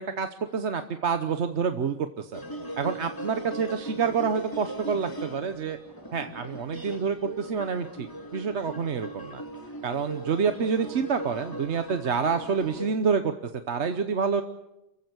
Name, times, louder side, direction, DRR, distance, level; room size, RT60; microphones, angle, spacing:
voice 1, 0.0-2.4 2.8-5.8 6.1-8.1 8.3-9.4 9.8-14.4, right 6 dB, 70° right, 8 dB, 1.3 m, -28 dB
sound 1, 2.3-12.9, right 1 dB, 15° left, 2.4 m, -39 dB
28.0 x 15.5 x 8.0 m, 0.94 s
omnidirectional pair, 1.2 m